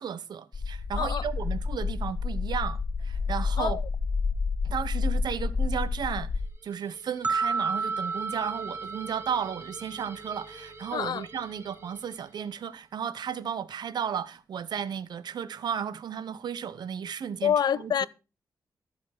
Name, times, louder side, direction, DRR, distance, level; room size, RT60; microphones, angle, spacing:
voice 1, 0.0-3.8 4.6-6.3 6.6-18.1, right 7 dB, 85° right, 0.9 m, -34 dB
sound 1, 0.5-6.5, left 4 dB, 40° left, 0.9 m, -29 dB
voice 2, 1.0-1.3 3.6-3.8 10.9-11.3 17.4-18.1, left 8 dB, 75° left, 0.5 m, -27 dB
sound 2, 6.4-12.7, right 2 dB, 35° right, 2.6 m, -49 dB
sound 3, 7.2-10.4, right 4 dB, 20° right, 0.6 m, -32 dB
13.5 x 7.2 x 5.8 m
wide cardioid pair, 100°, 7 cm